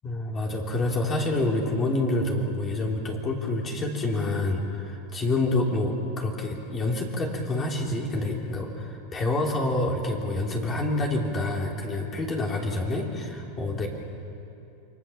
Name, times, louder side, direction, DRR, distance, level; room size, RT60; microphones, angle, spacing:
voice 1, 0.0-13.9, left 2 dB, 25° left, 0 dB, 3.3 m, -27 dB
28.5 x 22.0 x 7.2 m, 2.7 s
supercardioid pair, 135°, 0 cm